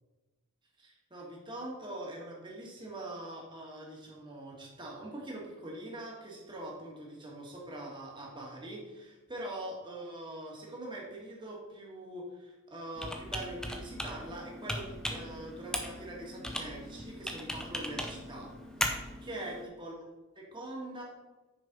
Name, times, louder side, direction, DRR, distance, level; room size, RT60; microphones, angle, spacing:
voice 1, 0.8-18.5 18.8-19.9 20.4-21.0, right 1 dB, 20° right, -2 dB, 1.8 m, -43 dB
Computer keyboard, 12.9-19.6, equal, 5° left, 0.7 m, -38 dB
6.3 x 5.4 x 5.3 m, 1.1 s
head